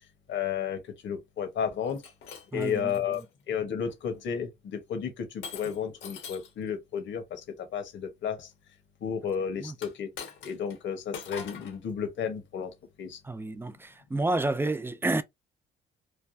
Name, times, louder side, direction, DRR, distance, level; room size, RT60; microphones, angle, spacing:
voice 1, 0.3-2.0 2.5-3.2 3.5-7.4 7.7-8.5 9.0-10.1 10.4-12.7 13.0-13.2, left 7 dB, 70° left, 1.1 m, -32 dB
Shatter, 1.9-3.3 3.9-4.2 5.4-6.6 9.7-10.8 11.1-11.8, left 6 dB, 85° left, 1.2 m, -43 dB
voice 2, 2.5-2.9 9.6-9.7 13.2-15.2, right 2 dB, 10° right, 0.3 m, -29 dB
3.3 x 2.2 x 2.6 m
cardioid pair, 90°, 20 cm